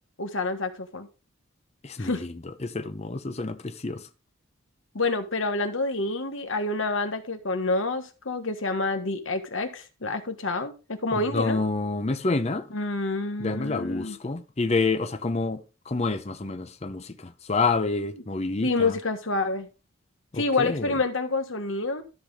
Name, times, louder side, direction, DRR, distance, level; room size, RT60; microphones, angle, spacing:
voice 1, 0.2-1.1 2.0-2.2 4.9-11.6 12.7-14.2 18.6-19.7 20.3-22.0, left 3 dB, 65° left, 1.4 m, -28 dB
voice 2, 1.8-2.3 2.6-4.0 11.3-12.7 13.4-18.9 20.3-20.9, left 3 dB, 30° left, 0.6 m, -28 dB
13.0 x 6.0 x 3.6 m
head